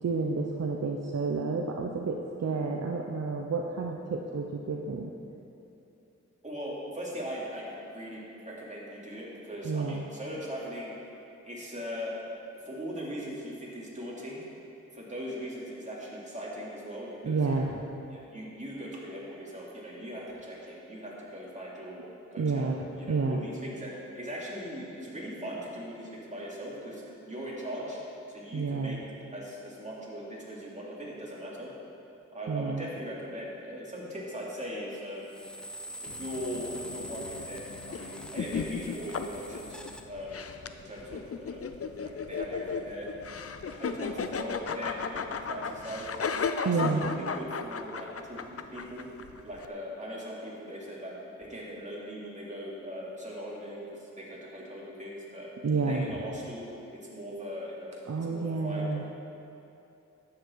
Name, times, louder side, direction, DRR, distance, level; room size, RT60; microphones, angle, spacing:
voice 1, 0.0-5.1 9.6-10.1 17.2-17.8 22.4-23.4 28.5-29.0 32.5-32.9 46.6-47.0 55.6-56.1 58.1-59.0, right 4 dB, 60° right, 1 dB, 0.8 m, -30 dB
voice 2, 6.4-10.9 11.5-12.1 12.5-14.4 14.9-17.7 18.1-22.0 22.3-28.0 28.3-29.0 29.3-31.7 32.3-35.4 36.0-41.7 42.0-43.1 43.6-46.2 46.6-49.1 49.4-55.5 55.9-58.8, equal, 25° right, -6 dB, 2.8 m, -40 dB
sound 1, 35.2-40.0, equal, 5° left, 0.7 m, -44 dB
sound 2, 36.1-49.7, left 5 dB, 50° left, 0.6 m, -36 dB
12.0 x 8.8 x 4.6 m, 2.8 s
wide cardioid pair, 65°, 29 cm